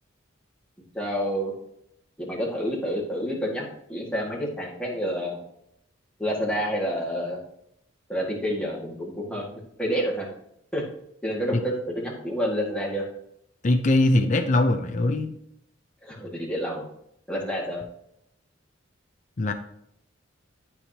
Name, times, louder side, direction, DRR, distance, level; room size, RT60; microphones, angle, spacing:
voice 1, 0.9-1.5 2.2-5.4 6.2-7.4 8.1-9.4 9.8-10.3 10.7-10.8 11.2-13.0 16.0-16.9 17.3-17.8, equal, 5° left, -3 dB, 1.8 m, -28 dB
voice 2, 13.6-15.4 19.4-19.5, left 2 dB, 40° left, 5 dB, 0.6 m, -21 dB
12.0 x 4.9 x 2.8 m, 0.76 s
head